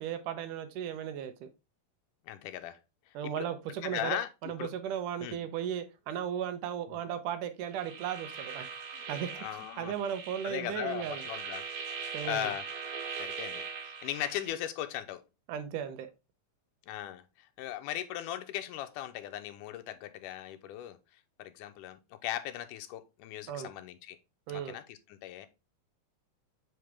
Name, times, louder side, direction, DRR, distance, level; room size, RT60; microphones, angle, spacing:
voice 1, 0.0-1.5 3.1-8.7 9.1-9.3 9.8-11.2 12.1-12.6 15.5-16.1 23.5-23.7 24.5-24.8, right 9 dB, 80° right, 2.4 m, -36 dB
voice 2, 2.3-2.8 3.4-3.5 3.8-4.7 5.2-5.4 6.9-7.0 9.4-9.9 10.4-11.6 12.0-12.6 13.2-13.7 14.0-15.2 16.9-21.0 21.4-24.2 24.5-25.5, left 12 dB, 90° left, 2.3 m, -38 dB
sound 1, 7.7-14.5, right 6 dB, 65° right, 2.4 m, -41 dB
8.1 x 3.9 x 3.4 m
omnidirectional pair, 3.6 m